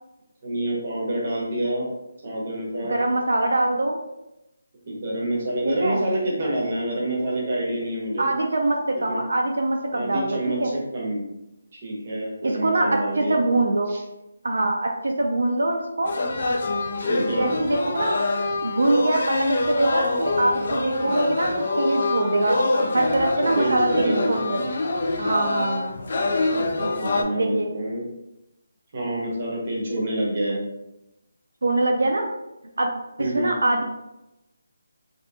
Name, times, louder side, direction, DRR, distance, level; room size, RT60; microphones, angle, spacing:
voice 1, 0.4-1.9 2.2-2.9 4.9-8.3 9.1-9.2 9.9-11.2 11.7-13.4 13.9-14.0 17.1-17.5 23.4-24.3 26.5-28.0 28.9-30.6 33.2-33.5, right 1 dB, 30° right, -4 dB, 0.7 m, -27 dB
voice 2, 2.9-4.0 5.6-6.0 8.2-10.7 12.4-12.9 13.2-14.0 14.4-16.1 17.4-18.2 18.6-22.6 22.9-24.7 25.2-26.0 27.4-27.7 31.6-32.3 32.8-32.9 33.2-33.8, right 2 dB, 80° right, 2 dB, 0.4 m, -23 dB
sound 1, 16.0-27.2, left 2 dB, 40° left, 0.3 m, -25 dB
2.7 x 2.6 x 2.2 m, 0.92 s
hypercardioid pair, 175°, 0 cm